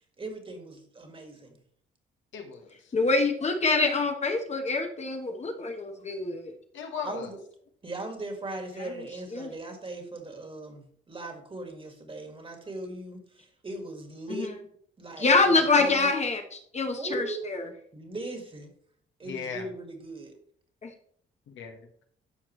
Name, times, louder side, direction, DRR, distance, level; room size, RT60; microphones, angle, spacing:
voice 1, 0.2-1.6 7.0-7.4 7.8-14.6 15.0-16.1 17.0-17.5 17.9-18.7 19.2-20.3, right 2 dB, 25° right, 4 dB, 1.9 m, -39 dB
voice 2, 2.3-2.9 6.7-7.3 19.2-19.7 21.5-21.9, left 6 dB, 75° left, 3 dB, 1.4 m, -37 dB
voice 3, 2.9-6.5 8.8-9.0 9.3-9.5 14.3-14.5 15.2-17.7 20.8-20.9, left 3 dB, 35° left, 4 dB, 1.1 m, -26 dB
12.5 x 4.5 x 3.2 m, 0.63 s
cardioid pair, 90°, 20 cm